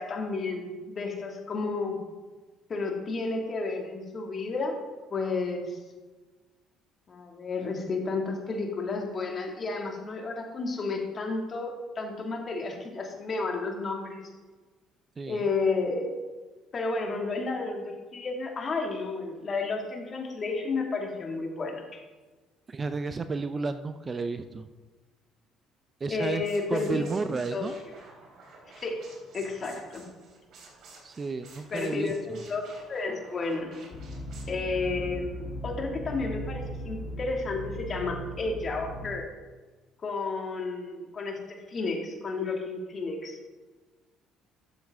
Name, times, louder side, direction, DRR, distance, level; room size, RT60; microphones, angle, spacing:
voice 1, 0.0-2.0 2.7-4.8 5.1-5.8 7.1-14.2 15.3-16.1 16.7-22.0 26.1-27.7 28.8-29.1 29.3-30.0 31.7-33.7 34.5-39.3 40.0-41.4 41.7-43.4, left 3 dB, 40° left, 1 dB, 2.1 m, -32 dB
voice 2, 15.2-15.5 22.7-24.7 26.0-26.4 26.7-27.8 31.0-32.4, right 4 dB, 30° right, 10 dB, 0.5 m, -32 dB
sound 1, 26.4-34.4, right 3 dB, 60° right, 3.4 m, -51 dB
sound 2, 33.9-39.1, equal, 55° left, 2.5 m, -38 dB
12.5 x 7.1 x 3.6 m, 1.3 s
cardioid pair, 95°, 0 cm